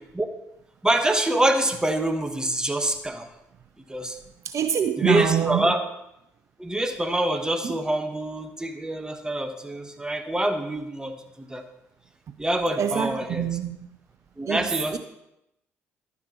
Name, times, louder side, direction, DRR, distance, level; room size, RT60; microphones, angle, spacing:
voice 1, 0.8-3.3 3.9-4.2 5.0-5.8 6.6-11.6 12.4-13.4 14.4-15.0, right 1 dB, 10° right, 1.3 m, -25 dB
voice 2, 4.4-5.7 7.6-7.8 12.8-13.9 14.5-14.6 14.9-15.0, right 9 dB, 55° right, 0.6 m, -25 dB
11.5 x 9.7 x 3.0 m
hypercardioid pair, 50°, 6 cm